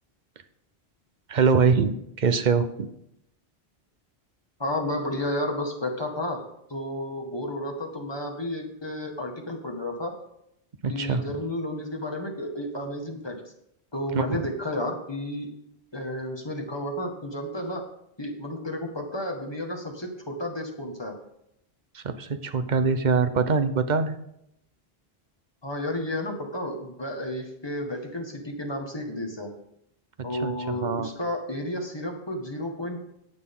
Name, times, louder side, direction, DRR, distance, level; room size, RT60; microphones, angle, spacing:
voice 1, 1.3-2.9 10.8-11.4 14.1-14.5 21.9-24.2 30.2-31.1, right 5 dB, 50° right, 10 dB, 0.9 m, -24 dB
voice 2, 4.6-10.1 10.9-13.4 13.9-15.5 15.9-17.8 18.2-21.2 25.6-29.5 30.2-33.1, left 1 dB, 25° left, 2 dB, 1.7 m, -32 dB
18.0 x 6.6 x 3.7 m, 0.78 s
omnidirectional pair, 1.1 m